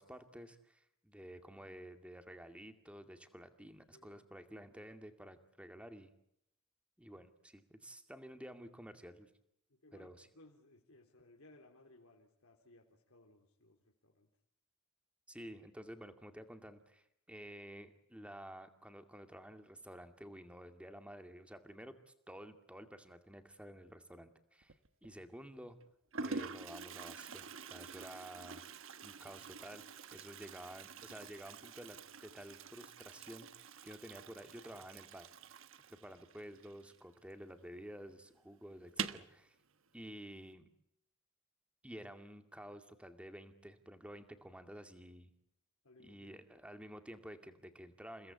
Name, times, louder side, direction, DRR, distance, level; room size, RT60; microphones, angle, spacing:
voice 1, 0.0-6.1 7.0-9.3 9.9-10.3 15.3-25.8 26.2-28.6 29.0-35.3 35.9-39.6 39.9-40.7 41.8-45.3 46.0-48.3, equal, 5° right, 7 dB, 2.2 m, -52 dB
voice 2, 3.9-4.4 4.7-4.8 9.7-14.3 30.2-30.3 36.4-36.6 45.8-46.4, left 2 dB, 75° left, 0 dB, 3.8 m, -63 dB
Toilet flush, 24.6-25.1 25.8-25.9 26.1-37.4 37.7-37.8 38.1-38.2 38.8-39.3, right 5 dB, 60° right, 1.3 m, -47 dB
29.5 x 18.0 x 8.4 m, 0.74 s
head